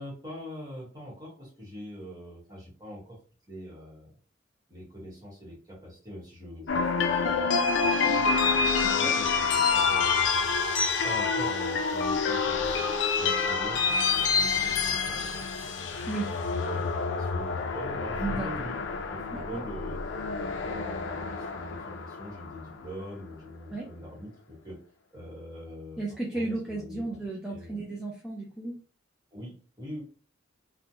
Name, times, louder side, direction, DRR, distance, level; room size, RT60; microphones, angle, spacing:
voice 1, 0.0-3.2 3.5-4.1 4.7-7.5 7.8-10.2 10.8-12.9 13.2-15.4 15.9-16.1 16.5-18.7 19.1-20.0 20.6-24.8 25.1-26.0 26.3-27.2 27.5-27.8 29.3-30.0, equal, 20° right, -4 dB, 1.2 m, -43 dB
sound 1, 6.7-22.9, left 5 dB, 70° left, 0.4 m, -27 dB
voice 2, 16.1-16.4 18.2-18.6 19.3-19.6 23.7-23.9 26.0-28.8, right 2 dB, 5° right, -4 dB, 0.4 m, -34 dB
3.1 x 2.1 x 2.7 m, 0.39 s
head